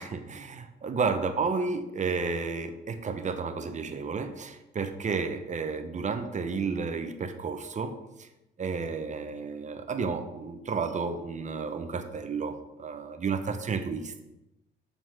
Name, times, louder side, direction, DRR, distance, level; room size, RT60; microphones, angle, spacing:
voice 1, 0.0-8.3 8.6-14.2, right 5 dB, 40° right, 8 dB, 0.7 m, -32 dB
7.7 x 4.1 x 4.7 m, 0.95 s
cardioid pair, 90°, 20 cm